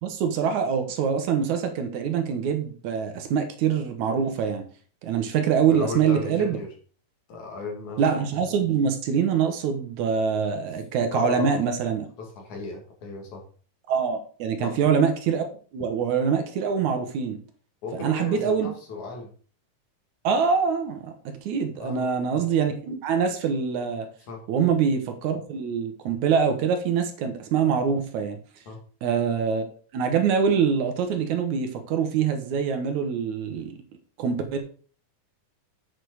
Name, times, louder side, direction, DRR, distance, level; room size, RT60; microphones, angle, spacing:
voice 1, 0.0-4.7 5.0-6.6 8.0-12.1 13.9-15.4 15.7-17.4 18.0-18.7 20.2-24.1 24.5-28.4 29.0-29.6 29.9-33.8 34.2-34.6, right 6 dB, 70° right, 6 dB, 2.3 m, -24 dB
voice 2, 5.7-6.7 7.3-8.1 11.1-11.7 12.2-13.4 14.6-14.8 17.8-19.3 21.8-22.1 24.3-24.4 28.7-28.8, left 4 dB, 65° left, 1 dB, 3.6 m, -35 dB
7.9 x 6.6 x 4.7 m, 0.42 s
omnidirectional pair, 3.7 m